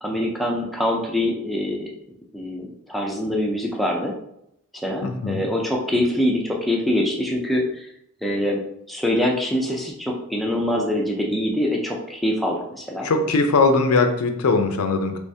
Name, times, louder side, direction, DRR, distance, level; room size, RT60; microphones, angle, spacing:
voice 1, 0.0-1.9 2.3-4.2 4.7-7.9 8.2-13.1, left 1 dB, ahead, -1 dB, 0.4 m, -24 dB
voice 2, 5.0-5.4 13.0-15.2, left 3 dB, 80° left, 6 dB, 0.5 m, -20 dB
3.4 x 3.1 x 2.7 m, 0.77 s
head